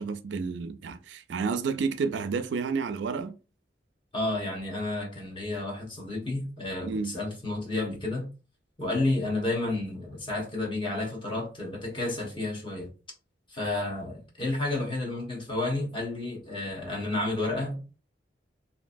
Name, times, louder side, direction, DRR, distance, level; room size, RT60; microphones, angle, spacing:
voice 1, 0.0-3.4 6.8-7.2, right 5 dB, 80° right, 0.4 m, -30 dB
voice 2, 4.1-8.3 8.8-12.9 13.5-18.0, left 2 dB, 30° left, 1.1 m, -31 dB
2.9 x 2.5 x 2.5 m
head